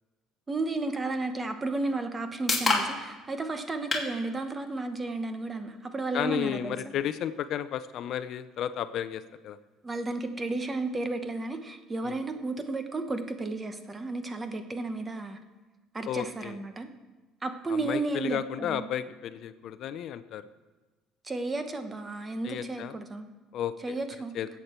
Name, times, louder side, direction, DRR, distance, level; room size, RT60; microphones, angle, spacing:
voice 1, 0.5-6.8 9.8-15.4 15.9-16.9 17.4-18.9 21.2-23.3 23.8-24.4, right 2 dB, 20° right, 8 dB, 1.0 m, -33 dB
sound 1, 1.7-15.6, left 3 dB, 15° left, 2.4 m, -38 dB
voice 2, 6.1-9.6 12.0-12.2 16.1-16.6 17.7-20.4 22.4-22.9 23.5-23.7 24.3-24.5, left 10 dB, 55° left, 12 dB, 0.5 m, -33 dB
20.0 x 8.3 x 4.4 m, 1.2 s
cardioid pair, 130°, 0 cm